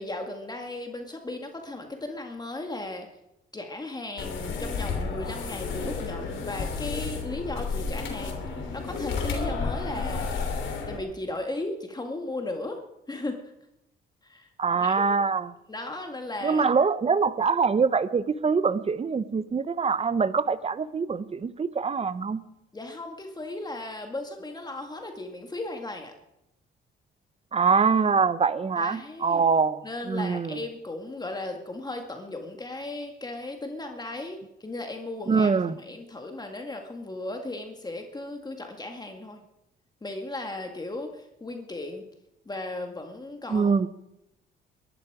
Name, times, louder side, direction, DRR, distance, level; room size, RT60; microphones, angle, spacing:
voice 1, 0.0-3.1 3.5-10.6 10.9-13.5 14.2-14.5 14.7-15.1 15.7-16.7 22.7-26.1 28.8-29.4 29.8-35.5 35.8-39.4 40.0-42.0 42.5-43.9, left 2 dB, 20° left, 4 dB, 1.9 m, -36 dB
sound 1, 4.2-11.0, left 4 dB, 75° left, 3.3 m, -31 dB
voice 2, 14.6-15.5 16.4-22.4 27.5-29.8 30.1-30.6 35.3-35.8 43.5-43.9, right 5 dB, 30° right, 16 dB, 0.8 m, -24 dB
22.0 x 12.0 x 5.0 m, 0.87 s
cardioid pair, 90°, 20 cm